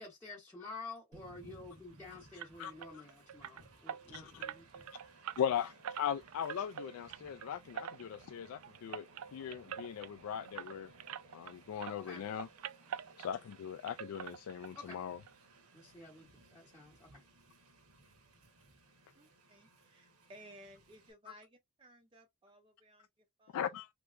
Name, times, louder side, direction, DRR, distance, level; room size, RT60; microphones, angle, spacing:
voice 1, 0.0-4.8 12.0-12.2 14.7-15.0 15.7-17.2, left 3 dB, 10° left, 0.8 m, -50 dB
Train, 1.1-21.1, right 2 dB, 90° right, 1.0 m, -61 dB
sound 1, 2.4-11.6 11.8-13.6 13.9-15.0 15.2-15.4 15.8-15.9 16.2-16.3, right 9 dB, 70° right, 0.3 m, -46 dB
voice 2, 2.6-3.0 4.1-4.4 5.4-9.1 9.3-10.9 11.3-12.5 13.2-15.2 23.5-23.9, left 8 dB, 75° left, 0.3 m, -39 dB
voice 3, 19.1-23.7, equal, 25° right, 0.5 m, -59 dB
3.2 x 2.9 x 2.3 m
head